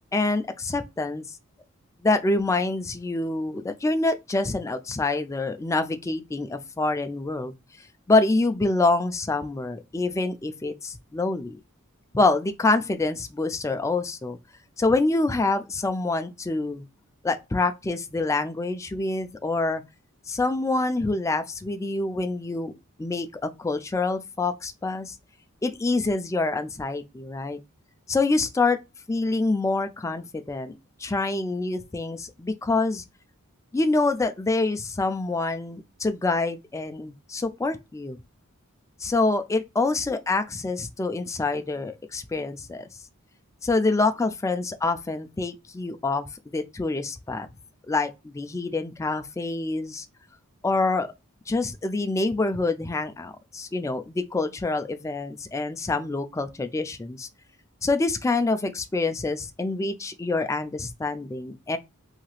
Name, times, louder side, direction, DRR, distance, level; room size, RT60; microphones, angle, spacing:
voice 1, 0.1-1.3 2.0-7.5 8.1-11.6 12.1-14.4 14.8-16.9 17.2-19.8 20.3-22.7 23.0-25.2 25.6-27.6 28.1-28.8 29.1-30.7 31.0-33.0 33.7-38.2 39.0-42.9 43.6-47.5 47.9-50.1 50.6-51.1 51.5-57.3 57.8-61.8, left 3 dB, 15° left, 0.3 m, -26 dB
3.1 x 2.8 x 2.3 m
head